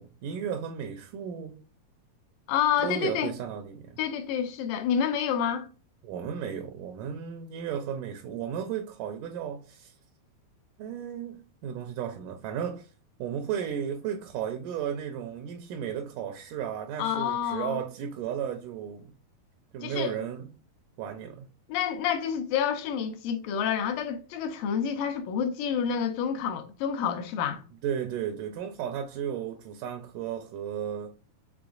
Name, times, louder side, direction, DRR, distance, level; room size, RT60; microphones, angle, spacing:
voice 1, 0.0-1.6 2.8-4.0 6.0-10.0 10.8-12.9 13.2-19.1 19.7-20.5 21.0-21.5 27.8-31.1, right 8 dB, 80° right, 2.0 m, -34 dB
voice 2, 2.5-3.3 4.0-5.7 17.0-17.8 19.8-20.1 21.7-27.6, left 8 dB, 80° left, 2.3 m, -28 dB
6.0 x 3.4 x 2.3 m
omnidirectional pair, 3.9 m